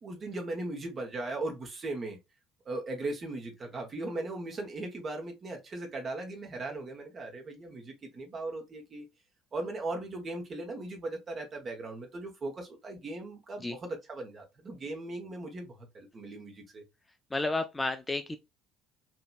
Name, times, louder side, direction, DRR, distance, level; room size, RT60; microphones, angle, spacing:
voice 1, 0.0-2.2 2.6-9.0 9.5-16.8, right 2 dB, 35° right, 1.1 m, -38 dB
voice 2, 17.3-18.4, left 2 dB, 15° left, 0.4 m, -31 dB
2.9 x 2.8 x 2.3 m
figure-of-eight pair, 55°, 0 cm